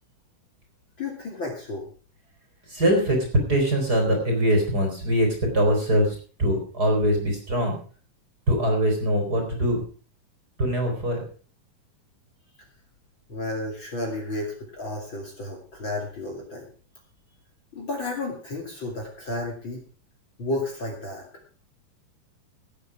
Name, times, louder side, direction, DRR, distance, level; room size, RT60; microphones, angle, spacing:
voice 1, 1.0-1.9 13.3-16.7 17.7-19.8 20.4-21.2, left 2 dB, 40° left, 0 dB, 3.0 m, -32 dB
voice 2, 2.7-3.2 3.5-7.8 8.5-9.8 10.6-11.2, equal, 30° right, 2 dB, 3.8 m, -22 dB
16.5 x 8.6 x 4.9 m, 0.41 s
omnidirectional pair, 3.9 m